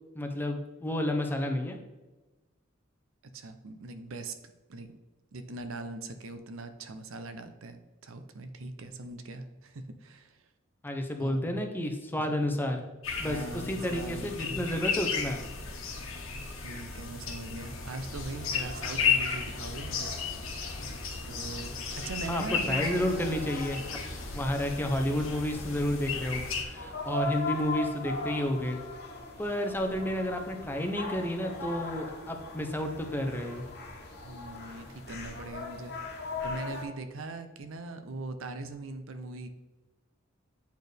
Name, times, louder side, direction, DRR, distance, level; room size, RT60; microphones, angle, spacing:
voice 1, 0.1-1.8 10.8-12.8 13.2-15.5 22.3-24.0 24.3-28.8 29.4-33.6, left 1 dB, 10° left, 4 dB, 0.7 m, -31 dB
voice 2, 3.3-4.3 4.7-5.0 5.3-10.4 11.2-11.7 12.2-12.4 13.2-14.7 16.6-20.1 21.3-21.7 22.0-23.5 34.2-35.9 36.4-39.5, right 2 dB, 75° right, 8 dB, 0.6 m, -41 dB
sound 1, 13.0-26.6, left 6 dB, 75° left, 1.2 m, -34 dB
sound 2, 17.6-36.8, left 2 dB, 55° left, 1.2 m, -41 dB
8.1 x 4.4 x 3.4 m, 1.1 s
head